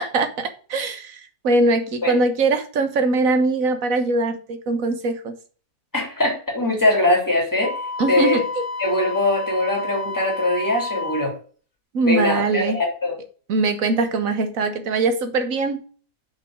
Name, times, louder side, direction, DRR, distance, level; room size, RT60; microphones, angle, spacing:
voice 1, 0.0-5.4 8.0-8.4 11.9-12.8 13.5-15.8, right 3 dB, 60° right, 8 dB, 1.6 m, -22 dB
voice 2, 5.9-7.8 8.1-8.4 8.8-11.3 12.0-13.2, left 2 dB, 10° left, 0 dB, 3.3 m, -21 dB
Wind instrument woodwind instrument, 7.6-11.3, left 3 dB, 55° left, 2.6 m, -30 dB
6.2 x 5.5 x 6.2 m, 0.40 s
omnidirectional pair, 1.7 m